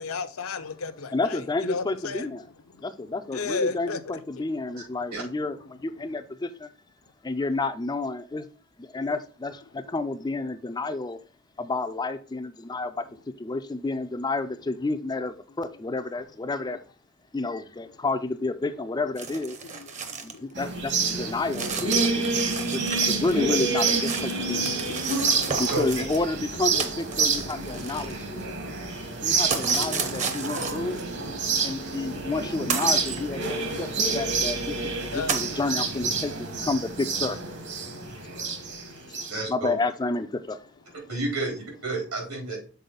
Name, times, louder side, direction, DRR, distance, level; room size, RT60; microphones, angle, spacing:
voice 1, 0.0-2.3 3.3-4.0 4.4-4.5 19.6-20.4 25.4-25.5 29.0-29.1 35.1-35.3, left 4 dB, 70° left, 0.6 m, -33 dB
voice 2, 1.1-2.4 2.8-6.7 7.2-8.5 8.8-11.2 11.6-13.1 13.4-16.8 17.3-19.6 20.2-24.7 25.5-28.3 29.2-31.0 31.6-33.9 34.1-37.4 39.1-40.6, left 3 dB, 20° left, 0.4 m, -30 dB
sound 1, 19.2-20.4 20.7-20.8 21.5-23.3 23.6-26.2 26.8-28.5 29.5-31.0 31.9-32.0 32.7-33.2 34.0-34.1 34.4-34.5 35.3-35.5, right 5 dB, 35° right, 0.8 m, -33 dB
sound 2, 20.6-39.3, right 4 dB, 55° right, 1.3 m, -28 dB
voice 3, 39.3-39.8 41.1-42.6, right 3 dB, 80° right, 3.7 m, -30 dB
6.8 x 4.3 x 3.9 m
head